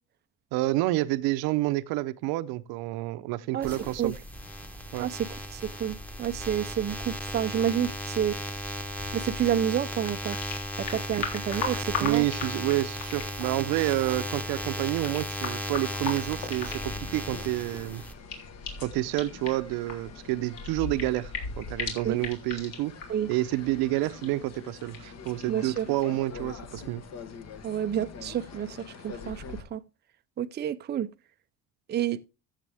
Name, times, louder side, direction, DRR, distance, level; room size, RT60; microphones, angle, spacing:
voice 1, 0.5-4.1 4.9-5.1 12.0-18.0 18.8-22.9 23.3-27.0, right 17 dB, 80° right, 0.8 m, -29 dB
sound 1, 3.6-18.1, equal, 5° left, 1.2 m, -36 dB
voice 2, 5.0-8.4 9.1-10.4 10.8-12.2 22.0-22.2 23.1-23.3 25.5-25.9 27.6-29.4 29.7-29.8 30.4-31.1 31.9-32.2, right 9 dB, 30° right, 0.5 m, -29 dB
sound 2, 9.4-26.2, left 5 dB, 70° left, 3.5 m, -40 dB
sound 3, 16.3-29.6, left 4 dB, 45° left, 1.4 m, -43 dB
14.0 x 7.4 x 3.5 m
cardioid pair, 125°, 36 cm